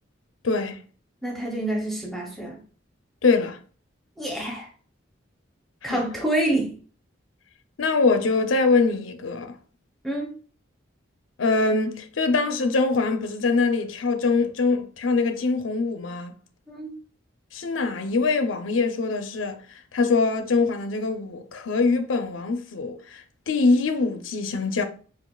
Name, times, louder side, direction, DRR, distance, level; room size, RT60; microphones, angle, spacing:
voice 1, 0.4-0.8 3.2-3.6 5.8-6.0 7.8-9.5 11.4-16.3 17.5-19.6 19.9-24.8, left 3 dB, 80° left, 0.6 m, -23 dB
voice 2, 1.2-2.6 4.2-4.7 5.8-6.7 10.0-10.3 16.7-16.9, right 1 dB, ahead, 0.7 m, -27 dB
7.0 x 2.4 x 2.3 m
head